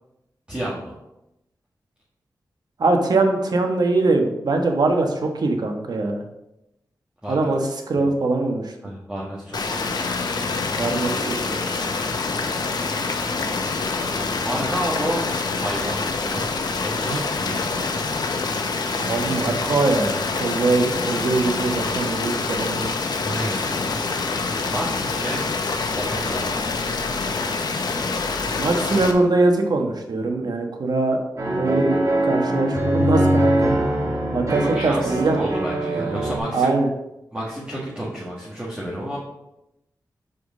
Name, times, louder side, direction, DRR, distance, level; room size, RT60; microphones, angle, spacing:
voice 1, 0.5-0.9 7.2-7.4 7.9-8.1 8.8-9.8 14.4-15.2 15.6-16.5 16.8-17.8 23.2-23.6 24.7-25.4 25.9-26.5 34.7-36.7 37.3-39.2, equal, 15° right, -7 dB, 1.8 m, -30 dB
voice 2, 2.8-6.2 7.3-8.7 10.8-11.6 17.1-17.2 19.0-22.9 28.6-31.2 31.5-33.8 34.3-35.5 36.5-36.9, right 2 dB, 70° right, 4 dB, 1.2 m, -22 dB
sound 1, 9.5-29.1, left 4 dB, 70° left, 0.8 m, -26 dB
sound 2, 31.4-36.4, right 1 dB, 50° right, 2.3 m, -22 dB
5.0 x 4.8 x 6.2 m, 0.88 s
cardioid pair, 60°, 7 cm